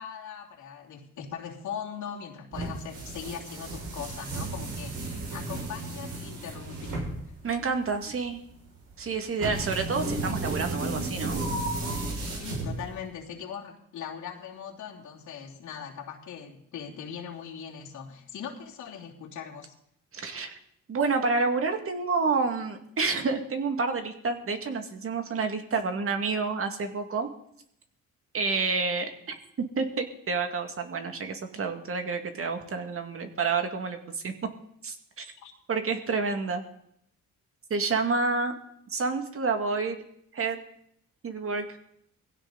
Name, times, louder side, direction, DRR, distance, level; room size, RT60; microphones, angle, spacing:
voice 1, 0.0-7.1 12.4-19.7 35.4-35.5, left 7 dB, 75° left, -1 dB, 3.1 m, -40 dB
sound 1, 2.5-13.1, right 2 dB, 80° right, 6.0 m, -34 dB
voice 2, 7.4-8.4 9.0-11.4 20.1-20.5 20.9-27.3 28.3-29.1 29.6-34.3 34.8-35.2 35.7-36.6 37.7-38.5 38.9-40.0 40.3-40.6 41.2-41.8, right 4 dB, 45° right, 6 dB, 2.1 m, -29 dB
19.5 x 16.0 x 4.0 m, 0.73 s
cardioid pair, 90°, 30 cm